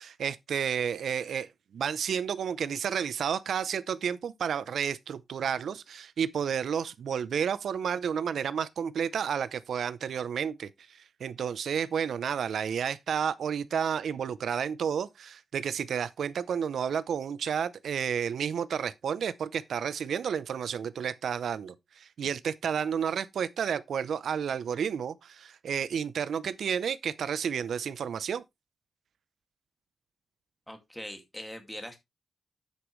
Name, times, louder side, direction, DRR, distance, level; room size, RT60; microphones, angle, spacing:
voice 1, 0.0-28.4, right 7 dB, 80° right, 0.6 m, -31 dB
voice 2, 30.7-32.0, equal, 5° left, 2.1 m, -41 dB
9.7 x 8.3 x 3.1 m
wide cardioid pair, 175°, 0 cm